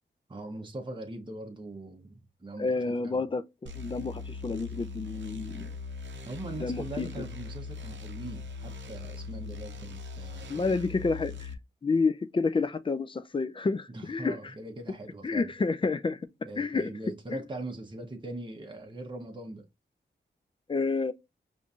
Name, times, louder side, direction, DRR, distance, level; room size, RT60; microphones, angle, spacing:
voice 1, 0.3-3.2 6.2-10.8 13.9-15.5 16.4-19.6, right 2 dB, 25° right, 0.8 m, -41 dB
voice 2, 2.6-5.7 6.6-7.1 10.5-11.5 11.8-14.5 15.2-16.2 16.6-16.9 17.3-17.4 20.7-21.1, left 4 dB, 25° left, 0.4 m, -29 dB
sound 1, 3.7-11.5, left 4 dB, 70° right, 0.6 m, -40 dB
5.2 x 2.6 x 2.3 m
cardioid pair, 55°, 20 cm